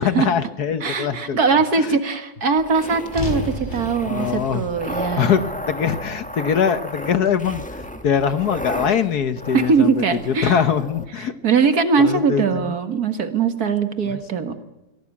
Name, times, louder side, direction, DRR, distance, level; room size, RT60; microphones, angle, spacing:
voice 1, 0.0-1.4 1.8-2.0 4.0-11.3 12.0-12.8 14.0-14.2 14.5-14.6, left 7 dB, 60° left, 11 dB, 1.5 m, -23 dB
voice 2, 0.8-5.5 9.5-10.6 11.2-14.5, right 5 dB, 55° right, 8 dB, 2.1 m, -21 dB
sound 1, 2.6-11.1, equal, 5° left, 1.6 m, -34 dB
sound 2, 3.1-7.4, left 2 dB, 25° left, 3.9 m, -34 dB
23.5 x 17.5 x 8.5 m, 0.96 s
omnidirectional pair, 2.0 m